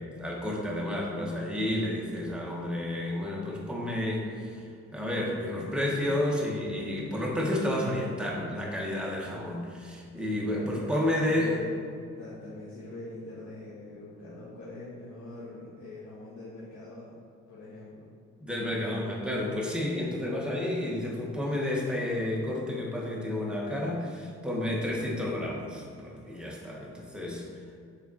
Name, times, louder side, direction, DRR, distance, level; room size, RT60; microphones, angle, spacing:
voice 1, 0.0-4.7 4.9-11.6 18.4-27.4, left 1 dB, 5° right, -4 dB, 1.6 m, -31 dB
voice 2, 10.2-17.2 17.5-18.1, left 2 dB, 70° left, -9 dB, 1.6 m, -43 dB
6.8 x 4.2 x 4.3 m, 2.4 s
cardioid pair, 90°, 30 cm